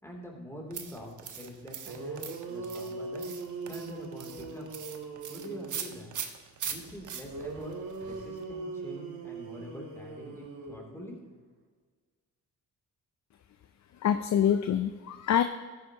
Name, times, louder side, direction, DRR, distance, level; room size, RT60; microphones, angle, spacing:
voice 1, 0.0-3.2 3.7-4.7 5.3-6.2 6.6-7.7 8.0-11.1, equal, 5° left, -1 dB, 3.0 m, -45 dB
Spray bottle spritz water-homemade, 0.7-8.4, right 7 dB, 60° right, 1.2 m, -42 dB
sound 1, 1.6-1.7 1.9-6.0 7.3-11.3, right 3 dB, 80° right, 2.9 m, -40 dB
voice 2, 14.0-15.4, left 9 dB, 50° left, 9 dB, 0.6 m, -25 dB
13.5 x 10.0 x 3.0 m, 1.5 s
cardioid pair, 80°, 35 cm